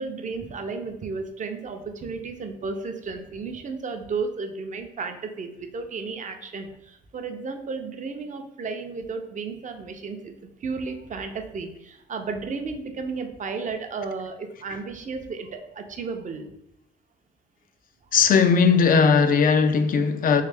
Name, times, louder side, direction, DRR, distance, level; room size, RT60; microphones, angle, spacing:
voice 1, 0.0-10.3 10.6-16.5, right 4 dB, 40° right, 0.6 m, -33 dB
voice 2, 18.1-20.4, left 5 dB, 45° left, 0.4 m, -18 dB
3.2 x 3.1 x 3.4 m
cardioid pair, 90°, 20 cm